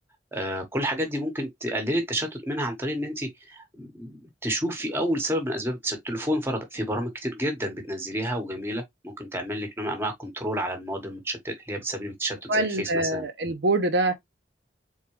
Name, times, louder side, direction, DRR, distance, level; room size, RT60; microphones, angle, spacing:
voice 1, 0.3-13.2, equal, 15° right, 1.1 m, -30 dB
voice 2, 12.5-14.1, right 2 dB, 75° right, 0.9 m, -24 dB
4.1 x 3.6 x 3.0 m
head